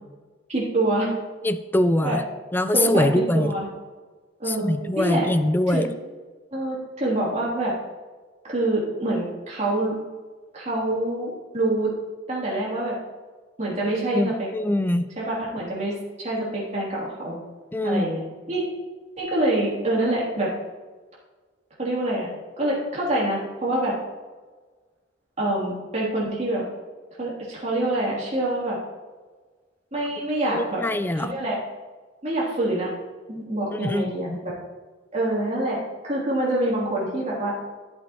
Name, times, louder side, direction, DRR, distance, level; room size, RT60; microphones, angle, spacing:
voice 1, 0.5-1.1 2.0-2.2 2.7-3.7 4.4-5.3 5.7-5.8 6.5-7.7 8.4-9.9 10.5-11.9 12.3-12.9 13.6-14.5 15.2-17.4 17.8-18.2 18.5-18.6 19.2-20.5 21.8-22.3 22.6-23.9 25.4-26.6 27.2-28.8 29.9-30.8 31.1-31.6 32.2-32.9 33.3-34.5 35.1-35.8 36.0-37.6, right 1 dB, 35° right, -6 dB, 3.0 m, -25 dB
voice 2, 1.4-2.2 2.5-3.5 4.5-5.9 14.1-15.1 17.7-18.1 30.5-31.3 33.7-34.4, left 1 dB, 10° left, 11 dB, 0.3 m, -23 dB
11.5 x 8.1 x 3.0 m, 1.4 s
head